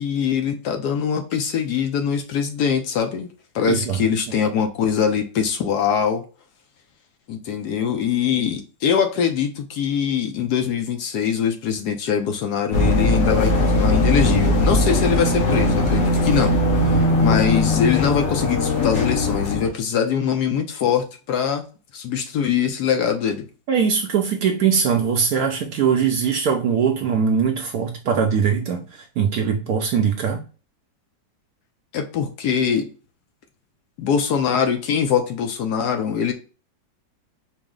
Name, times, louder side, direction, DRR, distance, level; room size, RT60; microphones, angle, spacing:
voice 1, 0.0-3.3 3.5-6.2 7.3-21.6 21.9-23.5 31.9-32.9 34.0-36.3, left 7 dB, 70° left, 1.0 m, -22 dB
voice 2, 3.7-4.0 23.7-30.4, right 6 dB, 70° right, 0.9 m, -21 dB
sound 1, 12.7-19.7, left 1 dB, 55° left, 1.4 m, -19 dB
4.7 x 2.0 x 3.6 m
omnidirectional pair, 2.0 m